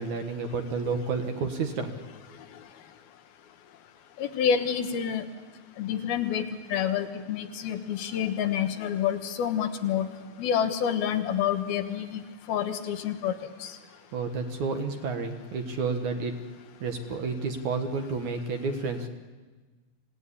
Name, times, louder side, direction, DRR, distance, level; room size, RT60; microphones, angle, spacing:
voice 1, 0.0-2.0 14.1-16.4 16.8-19.1, right 4 dB, 60° right, 5 dB, 2.7 m, -30 dB
voice 2, 4.2-5.2 5.8-10.1 10.4-12.2 12.5-13.3 13.6-13.7, left 8 dB, 80° left, 7 dB, 3.2 m, -28 dB
26.5 x 18.0 x 10.0 m, 1.3 s
omnidirectional pair, 4.4 m